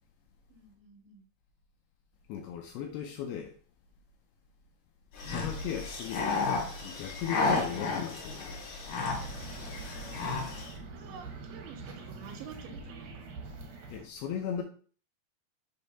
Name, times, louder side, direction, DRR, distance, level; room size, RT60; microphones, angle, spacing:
voice 1, 0.5-1.3 10.9-13.3, right 6 dB, 85° right, 3.2 m, -49 dB
voice 2, 2.3-3.6 5.2-8.6 13.9-14.6, left 9 dB, 80° left, 2.3 m, -37 dB
sound 1, 5.2-10.7, left 3 dB, 55° left, 3.0 m, -33 dB
sound 2, 9.1-14.1, right 3 dB, 70° right, 1.9 m, -44 dB
6.8 x 3.3 x 5.4 m
omnidirectional pair, 5.2 m